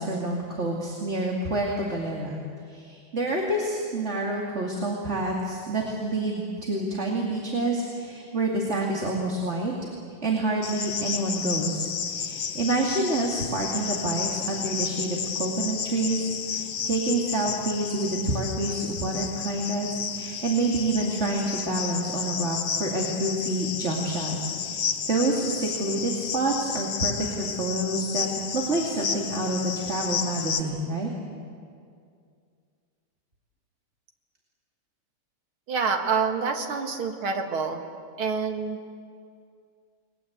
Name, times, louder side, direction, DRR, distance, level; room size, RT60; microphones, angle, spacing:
voice 1, 0.0-2.4 2.7-9.7 10.2-28.3 28.5-31.1, right 2 dB, 30° right, -1 dB, 2.7 m, -28 dB
Cricket, 10.6-30.6, left 7 dB, 50° left, 1.5 m, -32 dB
voice 2, 35.7-37.8 38.2-38.8, right 5 dB, 70° right, 4 dB, 2.7 m, -27 dB
30.0 x 21.0 x 8.1 m, 2.3 s
omnidirectional pair, 2.4 m